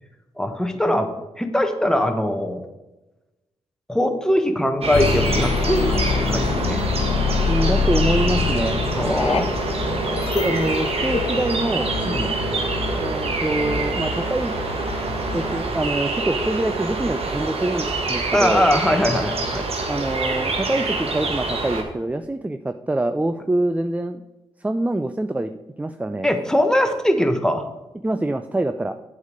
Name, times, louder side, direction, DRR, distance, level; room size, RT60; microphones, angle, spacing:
voice 1, 0.4-2.6 3.9-6.8 8.9-9.5 9.9-10.1 12.0-12.3 18.3-19.7 26.2-27.6, left 1 dB, 5° left, 6 dB, 1.3 m, -21 dB
sound 1, 4.8-21.8, right 3 dB, 60° right, 1.5 m, -26 dB
sound 2, 4.9-11.5, left 6 dB, 60° left, 0.5 m, -25 dB
sound 3, 6.0-15.6, left 3 dB, 80° left, 1.3 m, -32 dB
voice 2, 7.5-8.8 10.3-11.9 12.9-14.5 15.3-18.7 19.9-24.2 24.6-25.5 25.8-26.3 28.0-29.0, right 2 dB, 15° right, 10 dB, 0.5 m, -25 dB
8.0 x 5.5 x 6.6 m, 1.0 s
supercardioid pair, 45°, 11 cm